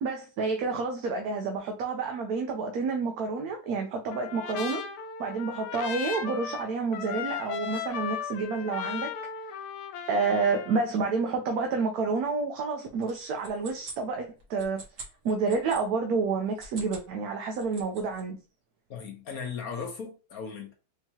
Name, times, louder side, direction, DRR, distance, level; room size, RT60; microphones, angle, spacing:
voice 1, 0.0-4.8 5.2-9.1 10.1-14.8 15.2-18.4, right 4 dB, 70° right, 1.1 m, -29 dB
Trumpet, 4.1-10.8, left 8 dB, 85° left, 1.2 m, -36 dB
sound 1, 13.0-15.8 16.5-17.1 17.4-18.2, right 4 dB, 55° right, 1.4 m, -45 dB
voice 2, 18.9-20.7, left 6 dB, 65° left, 1.3 m, -37 dB
4.4 x 2.8 x 2.9 m
omnidirectional pair, 1.8 m